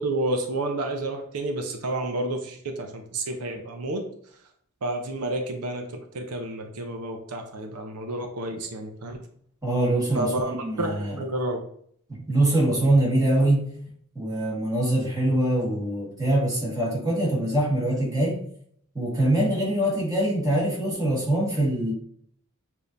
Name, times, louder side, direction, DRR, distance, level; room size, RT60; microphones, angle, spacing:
voice 1, 0.0-4.0 4.8-9.2 10.1-11.6, right 2 dB, 90° right, 4 dB, 0.7 m, -30 dB
voice 2, 9.6-11.2 12.1-13.7 14.1-18.4 18.9-21.9, right 1 dB, 15° right, -4 dB, 1.6 m, -23 dB
6.8 x 2.9 x 2.6 m, 0.63 s
head